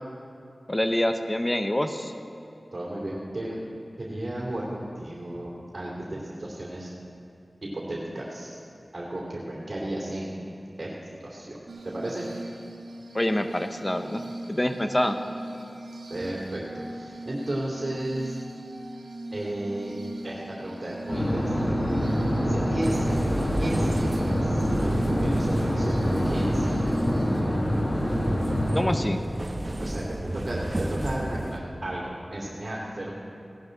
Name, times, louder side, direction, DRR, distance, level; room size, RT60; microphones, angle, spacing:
voice 1, 0.7-2.1 13.1-14.2 14.5-15.1 28.7-29.2, left 1 dB, 25° left, 7 dB, 0.9 m, -26 dB
voice 2, 2.7-3.6 4.0-6.9 7.7-8.6 8.9-10.4 10.8-10.9 11.2-11.6 11.8-12.2 16.1-18.3 19.3-19.9 20.2-21.7 22.4-23.2 23.6-26.9 29.8-30.0 30.3-33.1, right 1 dB, 55° right, -5 dB, 2.9 m, -34 dB
Glass, 11.7-27.4, right 1 dB, 90° right, 1.7 m, -40 dB
sound 1, 21.1-28.9, equal, 45° left, 2.3 m, -25 dB
sound 2, 22.8-31.6, right 1 dB, 40° right, 1.1 m, -33 dB
17.5 x 11.0 x 4.0 m, 2.7 s
cardioid pair, 40°, 0 cm